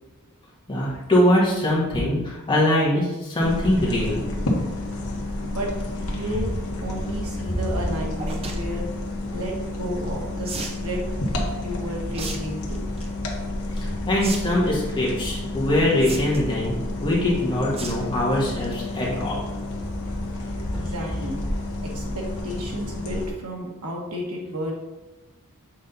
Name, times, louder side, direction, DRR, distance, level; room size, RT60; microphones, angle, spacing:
voice 1, 0.7-4.2 14.1-16.8 17.0-19.4, left 1 dB, 20° left, -6 dB, 1.9 m, -22 dB
sound 1, 3.4-23.3, left 1 dB, 70° left, 1.3 m, -30 dB
voice 2, 6.1-6.5 6.8-8.9 9.3-11.0 11.6-12.9 20.7-21.4 21.8-24.7, equal, 80° right, -1 dB, 1.6 m, -32 dB
sound 2, 8.2-8.6 10.4-10.8 12.1-12.4 12.7-13.1 14.2-14.4 14.7-14.8 16.0-16.5 17.8-18.0 18.4-18.6 19.0-19.1 19.3-19.4, right 3 dB, 25° right, 0.7 m, -33 dB
7.5 x 4.0 x 4.0 m, 1.0 s
head